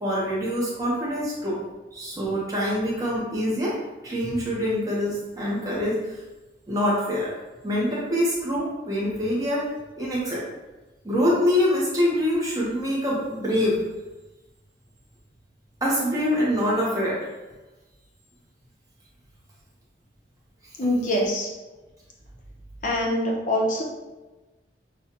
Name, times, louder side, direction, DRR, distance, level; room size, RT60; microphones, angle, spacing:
voice 1, 0.0-1.6 1.9-3.8 4.0-6.2 6.7-7.3 7.6-9.7 10.0-10.4 11.0-13.8 15.8-17.3, equal, 20° right, -6 dB, 1.0 m, -25 dB
voice 2, 20.8-21.5 22.8-23.8, left 1 dB, 40° left, -2 dB, 0.8 m, -24 dB
6.2 x 2.3 x 2.9 m, 1.1 s
head